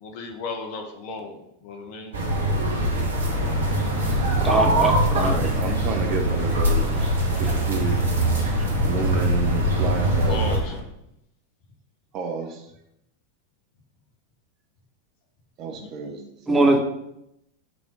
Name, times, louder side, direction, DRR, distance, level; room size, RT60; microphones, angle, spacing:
voice 1, 0.0-2.1 10.3-10.7, left 3 dB, 45° left, 3 dB, 1.0 m, -34 dB
sound 1, 2.1-10.6, right 1 dB, 70° right, 1.1 m, -23 dB
sound 2, 3.3-10.8, left 3 dB, 5° left, 1.6 m, -34 dB
voice 2, 4.4-5.4 16.5-16.8, right 2 dB, 10° right, 0 dB, 1.2 m, -21 dB
voice 3, 5.3-6.9 7.4-8.0 8.8-10.4 12.1-12.6 15.6-16.6, right 5 dB, 35° right, 4 dB, 0.8 m, -30 dB
6.1 x 3.5 x 5.1 m, 0.81 s
figure-of-eight pair, 90°, 0 cm